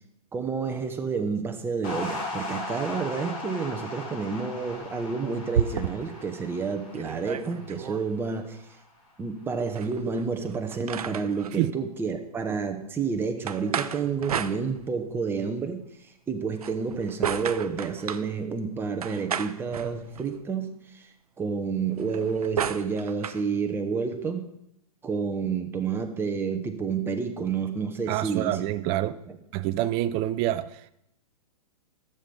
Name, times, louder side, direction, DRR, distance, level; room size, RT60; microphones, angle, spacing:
voice 1, 0.3-8.6 9.2-15.8 16.3-21.1 21.4-24.5 25.0-28.6 29.3-29.4, right 5 dB, 10° right, 5 dB, 1.0 m, -30 dB
sound 1, 1.8-8.3, left 2 dB, 25° left, 3.9 m, -38 dB
sound 2, 4.7-6.2 6.7-6.8 6.9-8.0 9.7-11.5 13.5-15.1 16.5-18.3 19.0-20.4 21.9-23.4, right 8 dB, 75° right, 0.6 m, -33 dB
voice 2, 28.1-29.2 29.5-30.9, right 14 dB, 30° right, 14 dB, 0.5 m, -27 dB
11.0 x 7.1 x 5.3 m, 0.79 s
hypercardioid pair, 120°, 19 cm